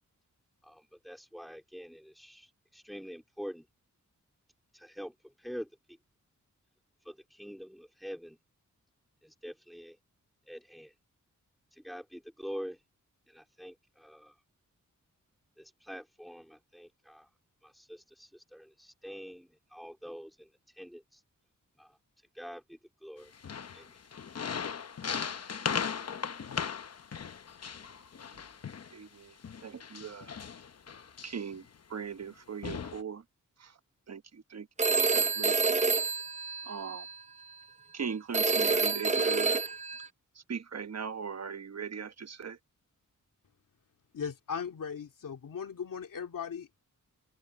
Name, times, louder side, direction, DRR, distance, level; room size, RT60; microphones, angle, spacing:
voice 1, 0.6-3.7 4.7-6.0 7.0-8.4 9.2-10.0 10.5-10.9 11.7-12.8 13.3-14.4 15.6-17.3 17.6-21.2 21.8-23.3 23.7-24.1, equal, ahead, 2.5 m, -46 dB
sound 1, 23.3-28.9 29.4-31.6 32.2-32.3 32.6-33.0, left 6 dB, 50° left, 0.9 m, -38 dB
voice 2, 28.9-29.4 29.6-30.4 31.2-33.2 33.6-33.8 34.1-34.7 35.1-35.8 36.6-37.1 37.9-39.6 40.3-42.6, right 6 dB, 55° right, 1.1 m, -39 dB
Telephone, 34.8-37.1 38.3-40.1, right 4 dB, 20° right, 0.6 m, -28 dB
voice 3, 44.1-46.8, left 6 dB, 90° left, 2.4 m, -38 dB
wide cardioid pair, 145°, 32 cm